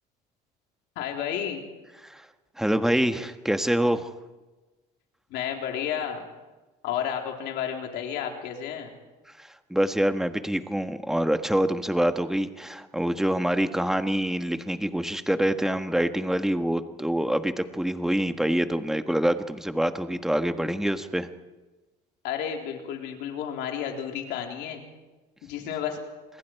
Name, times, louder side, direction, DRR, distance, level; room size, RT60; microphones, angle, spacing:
voice 1, 1.0-1.6 5.3-6.2 6.8-8.9 22.2-24.9 25.4-26.0, left 9 dB, 80° left, 2 dB, 3.8 m, -31 dB
voice 2, 2.6-4.1 9.4-21.3, right 1 dB, ahead, 8 dB, 1.4 m, -26 dB
27.5 x 21.5 x 4.7 m, 1.2 s
cardioid pair, 105°, 18 cm